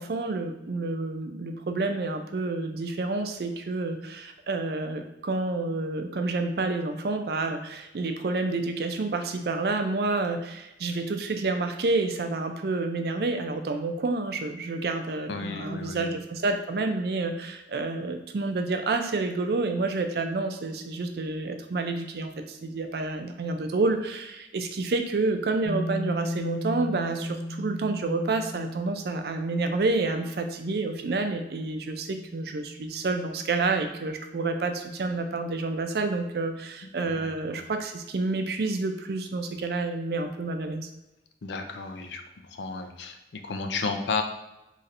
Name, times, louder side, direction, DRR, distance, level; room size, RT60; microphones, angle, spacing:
voice 1, 0.0-40.9, right 3 dB, 60° right, 6 dB, 0.4 m, -29 dB
voice 2, 15.3-16.2 36.8-37.3 41.4-42.2 42.5-44.2, left 4 dB, 80° left, 6 dB, 0.5 m, -33 dB
sound 1, 25.6-35.1, equal, 45° left, 0.7 m, -37 dB
4.1 x 3.1 x 2.5 m, 0.95 s
head